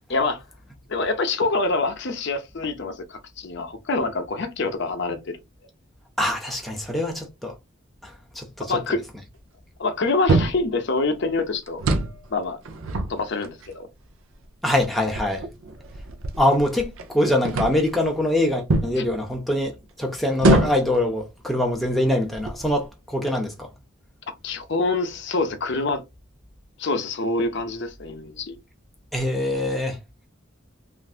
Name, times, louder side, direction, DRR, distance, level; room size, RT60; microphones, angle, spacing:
voice 1, 0.1-0.4 0.9-5.4 8.6-9.0 9.8-11.8 12.3-12.6 13.1-13.9 19.0-19.1 24.4-26.0 26.8-28.6, left 3 dB, 55° left, 0.6 m, -26 dB
voice 2, 6.2-7.5 8.0-8.8 14.6-15.5 16.4-23.7 29.1-30.0, left 1 dB, ahead, 0.5 m, -24 dB
sound 1, 10.3-10.7 11.7-12.2 12.7-13.7 14.4-14.5 15.1-17.1 17.4-17.9 18.7-19.0 20.4-21.0 21.7-21.9 22.3-22.9, right 2 dB, 70° right, 0.5 m, -24 dB
3.2 x 2.5 x 2.4 m
head